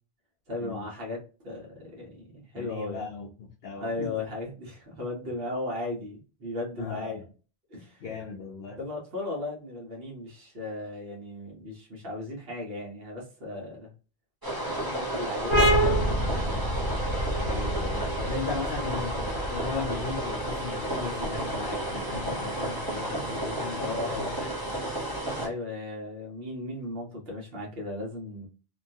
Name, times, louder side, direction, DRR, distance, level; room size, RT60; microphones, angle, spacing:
voice 1, 0.5-3.1 3.7-7.2 7.7-8.0 8.8-13.9 14.6-16.6 23.8-24.3 25.3-28.5, left 2 dB, 65° right, 1.3 m, -36 dB
voice 2, 2.6-4.1 6.8-7.3 8.0-8.8 17.4-24.5, left 5 dB, 65° left, 0.8 m, -37 dB
sound 1, 14.4-25.5, right 1 dB, 20° right, 1.0 m, -32 dB
sound 2, 15.5-22.8, right 1 dB, 30° left, 0.8 m, -28 dB
2.9 x 2.3 x 2.6 m
omnidirectional pair, 1.1 m